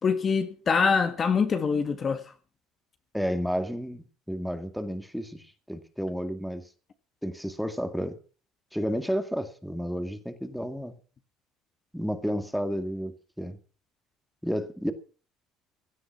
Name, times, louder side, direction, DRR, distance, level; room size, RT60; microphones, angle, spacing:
voice 1, 0.0-2.2, left 5 dB, 35° left, 1.8 m, -24 dB
voice 2, 3.1-6.7 7.2-8.2 8.7-11.0 11.9-13.6 14.4-14.9, equal, ahead, 2.1 m, -31 dB
17.0 x 11.5 x 5.9 m
cardioid pair, 125°, 0 cm